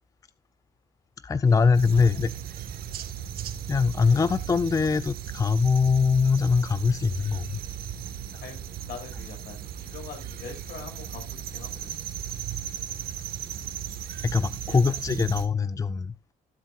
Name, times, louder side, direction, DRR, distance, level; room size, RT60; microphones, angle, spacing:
voice 1, 1.2-2.3 3.7-7.6 14.2-16.3, left 5 dB, 20° left, 0.5 m, -23 dB
sound 1, 1.7-15.5, right 9 dB, 65° right, 1.6 m, -36 dB
voice 2, 8.4-11.9 14.7-14.9, left 6 dB, 65° left, 6.3 m, -43 dB
17.0 x 7.9 x 2.4 m
cardioid pair, 110°, 17 cm